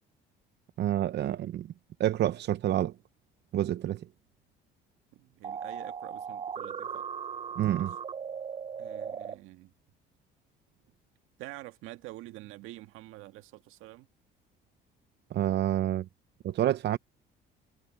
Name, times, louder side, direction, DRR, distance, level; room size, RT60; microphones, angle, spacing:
voice 1, 0.8-1.7 2.0-2.9 3.5-4.1 7.6-7.9 15.3-16.1 16.4-17.0, right 12 dB, 55° right, 0.7 m, -28 dB
voice 2, 5.1-7.1 7.7-7.9 8.7-9.7 11.4-14.1, right 18 dB, 80° right, 1.8 m, -47 dB
sound 1, 5.4-9.3, right 7 dB, 30° right, 0.5 m, -38 dB
supercardioid pair, 75°, 21 cm